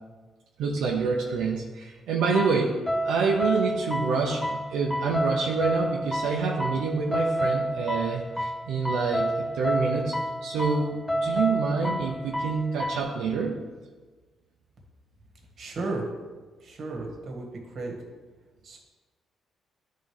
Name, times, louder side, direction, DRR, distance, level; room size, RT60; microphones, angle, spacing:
voice 1, 0.6-2.8 3.0-10.1 10.4-13.6, right 4 dB, 85° right, -1 dB, 0.7 m, -27 dB
sound 1, 2.2-13.0, equal, 5° left, 0.4 m, -30 dB
voice 2, 15.6-16.1 16.6-17.9 18.6-18.8, right 2 dB, 55° right, 0 dB, 1.6 m, -34 dB
10.5 x 3.8 x 3.4 m, 1.3 s
cardioid pair, 90°, 0 cm